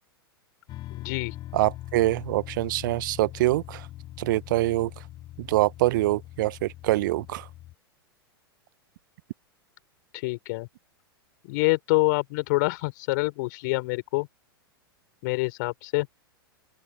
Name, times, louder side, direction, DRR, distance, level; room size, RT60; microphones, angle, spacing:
sound 1, 0.7-7.7, left 15 dB, 35° left, 5.2 m, -42 dB
voice 1, 0.9-1.3 10.1-10.7 11.4-14.3 15.2-16.1, left 25 dB, 50° left, 5.1 m, -26 dB
voice 2, 1.5-3.9 4.2-4.9 5.4-7.5, right 17 dB, 55° right, 1.0 m, -25 dB
open air
figure-of-eight pair, 100°, 13 cm